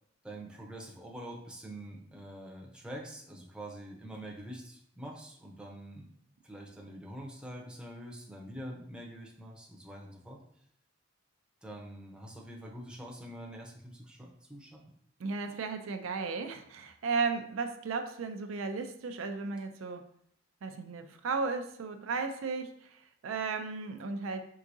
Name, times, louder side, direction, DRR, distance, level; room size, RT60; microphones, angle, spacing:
voice 1, 0.2-6.1 6.4-10.4 11.6-14.8, right 1 dB, 5° right, -2 dB, 0.7 m, -45 dB
voice 2, 15.2-20.0 20.6-24.5, right 4 dB, 80° right, 7 dB, 0.4 m, -35 dB
4.7 x 3.7 x 2.6 m, 0.68 s
head